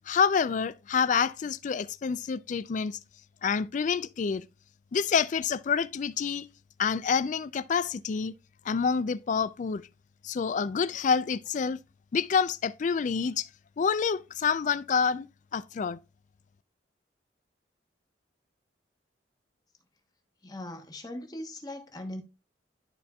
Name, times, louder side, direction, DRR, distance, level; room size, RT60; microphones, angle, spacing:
voice 1, 0.1-3.0 3.4-4.4 4.9-6.5 6.8-8.3 8.7-9.8 10.2-11.8 12.1-13.5 13.8-15.3 15.5-16.0, left 6 dB, 45° left, 0.3 m, -27 dB
voice 2, 20.4-22.2, left 1 dB, 20° left, 1.0 m, -39 dB
12.0 x 4.2 x 2.3 m
head